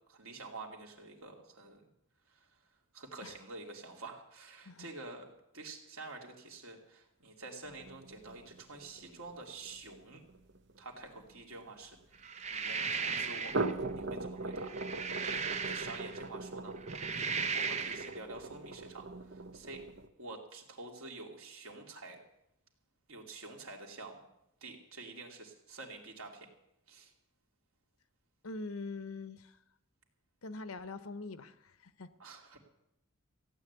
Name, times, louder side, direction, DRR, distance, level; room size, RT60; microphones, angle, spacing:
voice 1, 0.1-1.8 2.3-2.6 2.9-10.2 10.8-13.6 13.9-14.7 15.2-16.8 17.1-19.8 20.2-22.2 23.1-24.2 24.6-26.5 26.9-27.1 32.2-32.6, right 3 dB, 80° right, 2.9 m, -48 dB
sound 1, 7.6-12.2 13.3-20.1, right 2 dB, 55° right, 1.0 m, -41 dB
sound 2, 12.2-13.7 14.5-16.3 16.8-18.1, right 5 dB, 30° right, 0.7 m, -36 dB
voice 2, 28.4-29.6 30.4-32.1, left 3 dB, 85° left, 1.0 m, -43 dB
15.5 x 9.2 x 8.2 m
head